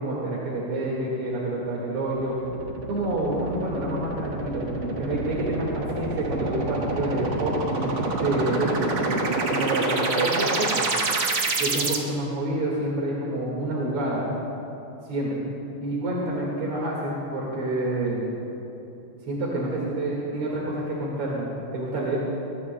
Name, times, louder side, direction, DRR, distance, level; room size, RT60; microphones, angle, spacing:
voice 1, 0.0-2.4 2.9-7.9 8.2-10.8 11.6-14.2 15.0-15.4 15.8-18.3 19.3-21.5 21.7-22.2, right 1 dB, 90° right, -4 dB, 2.9 m, -28 dB
sound 1, 2.1-12.0, right 3 dB, 70° right, 2.2 m, -27 dB
22.5 x 22.0 x 2.2 m, 3.0 s
omnidirectional pair, 2.4 m